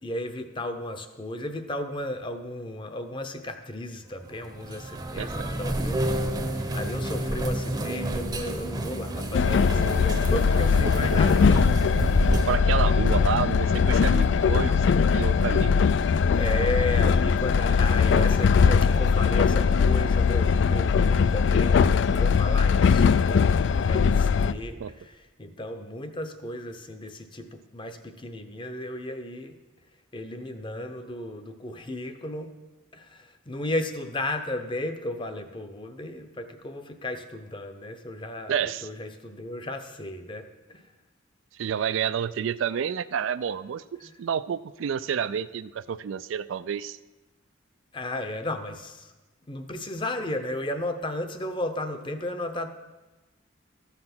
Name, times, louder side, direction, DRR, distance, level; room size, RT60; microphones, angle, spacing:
voice 1, 0.0-6.0 6.5-11.6 16.3-29.6 30.1-32.5 32.9-40.9 44.0-44.1 47.9-49.1 49.5-52.7, left 1 dB, 25° left, 8 dB, 0.7 m, -34 dB
sound 1, 4.3-12.6, right 1 dB, 20° right, 0.7 m, -29 dB
Train, 9.3-24.5, left 6 dB, 60° left, 0.3 m, -21 dB
voice 2, 10.8-11.3 12.2-15.8 24.8-24.9 38.5-38.9 41.6-47.0, right 8 dB, 70° right, 15 dB, 0.3 m, -29 dB
14.0 x 5.8 x 6.0 m, 1.1 s
head